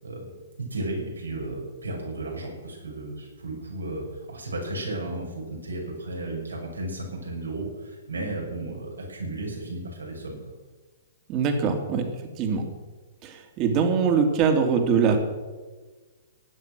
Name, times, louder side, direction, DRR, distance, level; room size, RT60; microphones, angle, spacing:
voice 1, 0.0-10.4, right 2 dB, 90° right, -1 dB, 6.5 m, -34 dB
voice 2, 11.3-12.0 12.4-12.6 13.2-15.2, right 6 dB, 35° right, 5 dB, 2.8 m, -22 dB
16.5 x 10.5 x 6.4 m, 1.3 s
hypercardioid pair, 120°, 0 cm